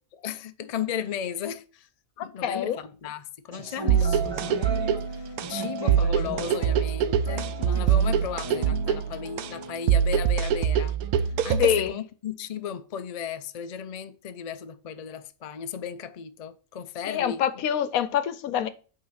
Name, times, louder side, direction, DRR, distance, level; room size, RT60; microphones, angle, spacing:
voice 1, 0.1-1.9 2.2-4.6 5.1-11.0 11.4-17.4, left 8 dB, 60° left, 0.4 m, -35 dB
voice 2, 2.2-2.8 11.6-12.0 17.0-18.7, left 9 dB, 80° left, 1.2 m, -26 dB
sound 1, 3.5-11.5, right 2 dB, 20° right, 1.1 m, -37 dB
sound 2, 3.9-11.9, right 8 dB, 90° right, 1.1 m, -24 dB
8.6 x 3.8 x 5.6 m
omnidirectional pair, 1.5 m